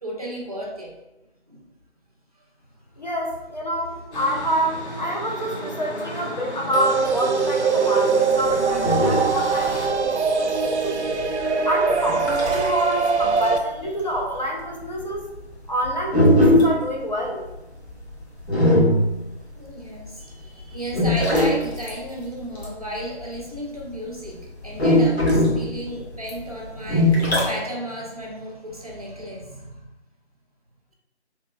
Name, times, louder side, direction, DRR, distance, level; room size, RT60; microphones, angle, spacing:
voice 1, 0.0-1.0 1.5-1.7 19.5-29.9, equal, 35° right, -3 dB, 0.5 m, -34 dB
voice 2, 3.0-11.0 11.6-15.2 15.7-17.4, equal, 40° left, -2 dB, 0.5 m, -27 dB
sound 1, 4.1-9.9, equal, 85° left, 1.0 m, -34 dB
sound 2, 6.7-13.6, right 5 dB, 85° right, 0.5 m, -22 dB
sound 3, 8.4-12.8 13.2-20.1 20.5-24.0 24.2-27.5, left 1 dB, 70° left, 1.2 m, -21 dB
3.0 x 2.8 x 2.2 m, 0.97 s
figure-of-eight pair, 165°, 34 cm